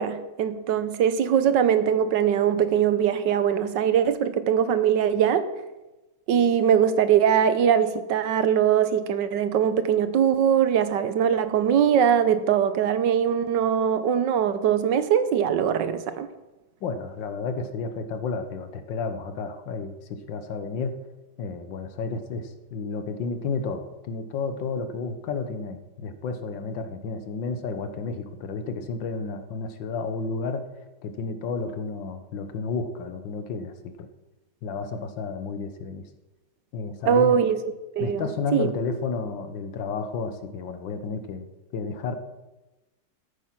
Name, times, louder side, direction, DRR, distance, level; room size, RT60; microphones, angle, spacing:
voice 1, 0.0-5.5 6.3-16.3 37.1-37.6 38.0-38.7, right 8 dB, 75° right, 1.5 m, -22 dB
voice 2, 16.8-21.0 21.4-30.7 31.0-34.1 34.6-36.1 36.7-37.4 38.0-41.5 41.7-42.2, left 4 dB, 85° left, 1.8 m, -31 dB
13.5 x 8.9 x 5.9 m
omnidirectional pair, 2.0 m